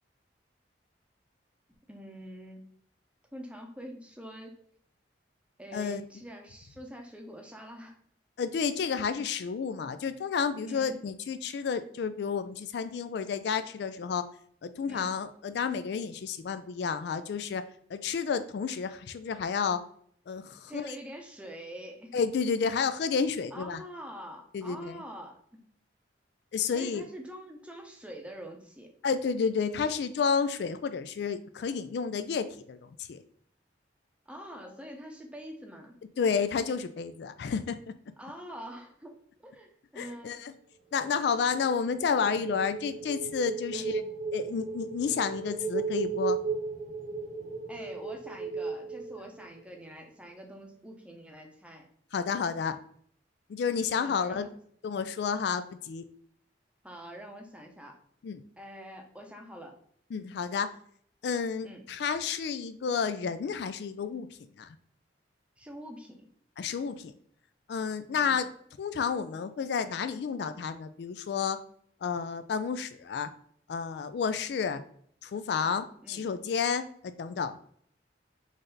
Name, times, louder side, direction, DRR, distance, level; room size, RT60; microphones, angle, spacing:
voice 1, 1.9-2.6 3.3-4.6 5.6-8.0 10.7-11.0 14.8-15.1 20.7-22.1 23.5-25.4 26.7-28.9 34.3-36.0 38.2-40.5 43.7-44.1 47.7-51.9 53.9-54.5 56.8-58.0 58.6-59.7 61.6-61.8 65.6-66.3 68.2-68.4 76.0-76.3, equal, 5° right, 3 dB, 0.7 m, -45 dB
voice 2, 8.4-14.2 14.6-17.6 17.9-19.8 20.3-20.9 22.1-23.8 24.5-25.0 26.5-27.0 29.0-33.2 36.2-37.8 40.0-40.5 40.9-44.0 44.3-46.4 52.1-52.8 53.5-54.5 54.8-56.0 58.2-58.4 60.1-60.7 61.2-64.3 64.6-64.7 66.6-67.1 67.7-68.5 68.8-71.6 72.0-73.3 73.7-74.8 75.2-77.6, left 6 dB, 60° left, 11 dB, 0.3 m, -31 dB
sound 1, 40.9-49.8, right 4 dB, 50° right, 0.9 m, -35 dB
4.0 x 3.3 x 3.9 m, 0.62 s
head